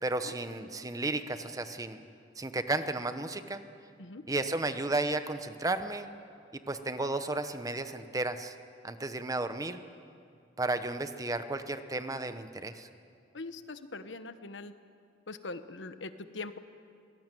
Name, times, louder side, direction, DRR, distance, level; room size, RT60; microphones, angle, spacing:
voice 1, 0.0-2.0 2.4-3.6 4.3-6.1 6.7-8.5 8.8-9.8 10.6-12.9, right 2 dB, 20° right, 9 dB, 1.0 m, -33 dB
voice 2, 13.3-14.7 15.3-16.6, left 3 dB, 85° left, 10 dB, 1.2 m, -42 dB
25.0 x 19.0 x 9.2 m, 2.4 s
head